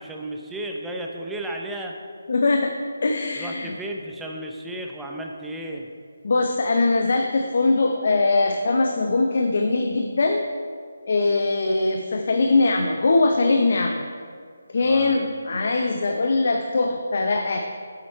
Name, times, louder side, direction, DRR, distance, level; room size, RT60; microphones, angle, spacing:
voice 1, 0.0-2.0 3.3-5.9 14.8-15.2, right 1 dB, 5° right, 0 dB, 0.6 m, -33 dB
voice 2, 2.3-2.7 3.0-3.7 6.2-10.4 11.1-14.0 14.7-17.6, left 3 dB, 55° left, 4 dB, 0.6 m, -21 dB
8.6 x 8.2 x 4.5 m, 2.1 s
figure-of-eight pair, 165°, 0 cm